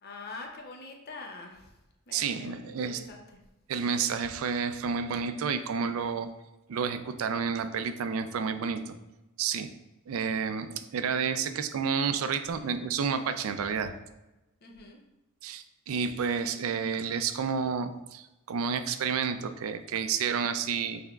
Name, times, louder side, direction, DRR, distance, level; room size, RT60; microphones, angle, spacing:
voice 1, 0.0-1.7 2.1-3.2 14.6-15.0, left 3 dB, 45° left, 1 dB, 0.6 m, -44 dB
voice 2, 2.1-3.0 3.7-6.3 6.7-9.0 9.4-9.7 10.1-13.9 15.4-21.0, right 6 dB, 75° right, 10 dB, 0.4 m, -30 dB
5.6 x 3.4 x 2.3 m, 0.99 s
head